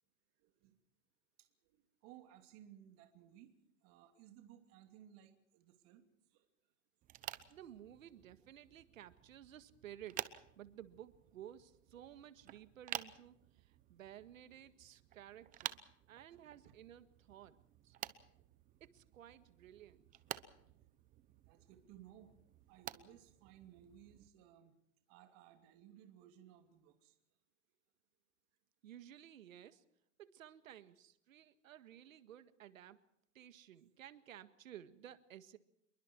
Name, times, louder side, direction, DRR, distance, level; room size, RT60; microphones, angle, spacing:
voice 1, 0.4-0.7 1.4-1.5 1.7-3.5 3.8-6.0 6.3-6.5 14.5-14.6 16.3-16.8 19.8-19.9 21.4-22.3 22.7-24.7 25.1-27.1, right 11 dB, 40° right, 6 dB, 2.8 m, -60 dB
sound 1, 7.0-24.3, right 13 dB, 20° right, 0.9 m, -51 dB
voice 2, 7.5-17.6 17.8-18.0 18.8-20.2 20.7-20.8 28.8-29.8 30.2-33.0 33.3-35.6, right 11 dB, 85° right, 12 dB, 1.9 m, -55 dB
27.5 x 23.0 x 4.6 m, 0.74 s
supercardioid pair, 150°, 39 cm